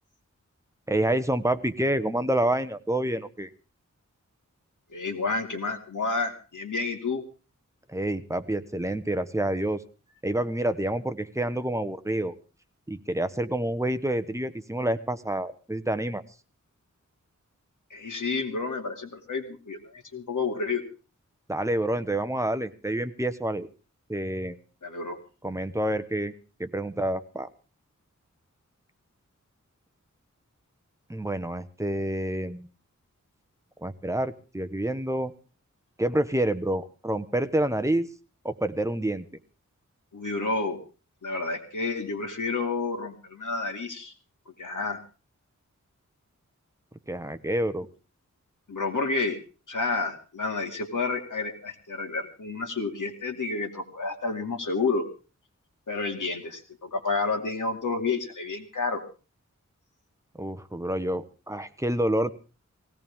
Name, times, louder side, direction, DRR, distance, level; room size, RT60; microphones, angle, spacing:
voice 1, 0.9-3.5 7.9-9.8 10.2-12.3 12.9-16.2 21.5-23.7 24.1-24.6 25.4-26.3 26.6-27.5 31.1-32.7 33.8-35.3 36.0-38.1 38.4-39.2 47.1-47.9 60.4-62.3, right 1 dB, 10° right, 10 dB, 1.1 m, -28 dB
voice 2, 4.9-7.2 17.9-19.8 20.1-20.8 24.8-25.2 40.1-40.8 41.2-44.1 44.6-45.0 48.7-49.4 49.7-55.1 55.9-59.0, left 3 dB, 85° left, 3 dB, 2.5 m, -30 dB
18.5 x 17.0 x 3.6 m, 0.34 s
wide cardioid pair, 90°, 31 cm